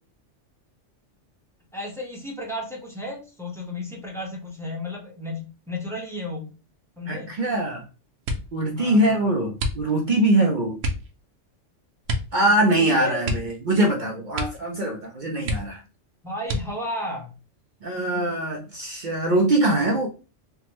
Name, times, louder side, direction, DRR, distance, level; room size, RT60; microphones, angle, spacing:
voice 1, 1.7-6.5 7.0-7.3 8.8-9.2 12.3-13.2 16.2-17.3, left 1 dB, 5° left, -3 dB, 0.7 m, -33 dB
voice 2, 7.1-7.8 8.5-10.8 12.3-15.8 17.8-20.1, right 1 dB, 55° right, 0 dB, 0.6 m, -22 dB
sound 1, 8.2-8.6 9.5-10.2 10.8-11.1 12.0-12.4 12.6-12.7 13.2-14.0 14.3-14.7 15.0-15.1 15.4-16.0 16.4-17.0 17.7-18.3 18.7-19.1, equal, 85° right, 1.0 m, -29 dB
3.4 x 2.1 x 2.9 m, 0.33 s
omnidirectional pair, 1.3 m